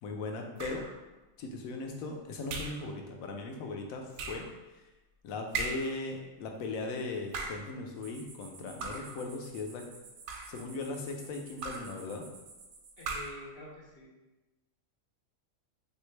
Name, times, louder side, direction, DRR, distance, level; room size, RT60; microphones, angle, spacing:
voice 1, 0.0-0.8 1.4-4.4 5.2-9.8 10.5-12.3, left 3 dB, 85° left, 3 dB, 1.0 m, -38 dB
sound 1, 0.6-1.0 2.5-2.9 4.2-4.5 5.5-6.0 7.2-7.7 8.8-9.2 10.1-10.7 11.6-12.0 13.0-13.5, right 3 dB, 90° right, 1.0 m, -38 dB
sound 2, 8.0-13.3, right 4 dB, 65° right, 0.8 m, -53 dB
voice 2, 13.0-14.1, left 1 dB, 55° left, -3 dB, 0.9 m, -47 dB
3.3 x 2.8 x 3.1 m, 1.1 s
omnidirectional pair, 1.4 m